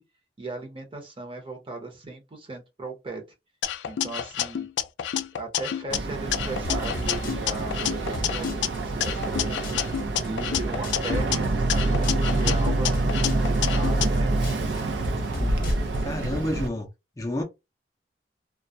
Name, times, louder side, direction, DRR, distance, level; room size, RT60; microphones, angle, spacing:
voice 1, 0.4-3.2 3.9-4.7 5.4-9.6 10.2-14.3, right 3 dB, 30° right, 0.7 m, -37 dB
sound 1, 3.6-6.0 6.3-8.7 9.0-11.4 11.7-14.1, left 10 dB, 85° left, 0.3 m, -29 dB
Boat Water vehicle, 5.9-16.7, right 2 dB, 85° right, 0.5 m, -26 dB
sound 2, 6.6-16.2, left 1 dB, 55° left, 0.7 m, -36 dB
voice 2, 15.4-15.7 16.0-16.9 17.2-17.4, left 1 dB, 20° left, 0.4 m, -30 dB
2.2 x 2.1 x 2.6 m
head